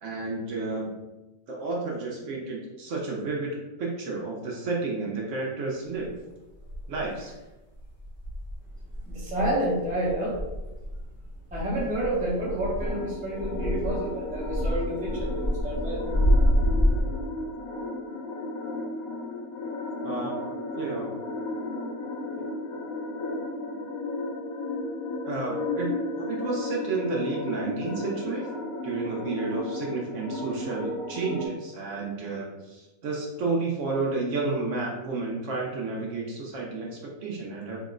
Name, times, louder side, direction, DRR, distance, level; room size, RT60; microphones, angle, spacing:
voice 1, 0.0-1.0 1.5-3.5 3.8-6.1 6.9-7.3 20.0-20.4 20.7-21.1 25.2-28.5 28.8-37.8, right 3 dB, 65° right, -2 dB, 0.8 m, -31 dB
sound 1, 6.1-6.2 6.6-7.3 7.7-17.0, equal, 50° left, 0.7 m, -28 dB
voice 2, 9.1-10.3 11.5-16.0, right 1 dB, 10° right, -6 dB, 0.4 m, -29 dB
sound 2, 12.8-31.5, left 2 dB, 75° left, 1.0 m, -34 dB
2.9 x 2.0 x 3.6 m, 1.1 s
omnidirectional pair, 1.5 m